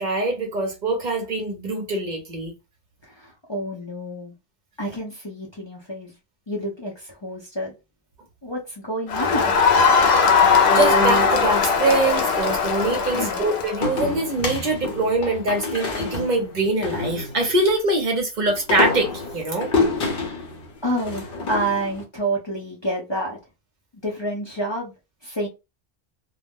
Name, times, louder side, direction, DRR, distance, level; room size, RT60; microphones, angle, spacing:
voice 1, 0.0-2.5 10.7-19.7, right 2 dB, 50° right, 0.8 m, -23 dB
voice 2, 3.0-4.3 4.8-6.2 6.5-7.7 8.4-9.5 13.1-13.4 20.0-20.4 20.8-23.4 24.0-24.9 25.2-25.5, right 1 dB, 30° left, 0.6 m, -29 dB
Crowd, 9.1-13.9, left 5 dB, 90° left, 0.9 m, -19 dB
sound 1, 10.1-11.8 13.8-17.7 18.5-22.0, left 3 dB, 65° left, 0.9 m, -28 dB
2.3 x 2.0 x 3.5 m
omnidirectional pair, 1.0 m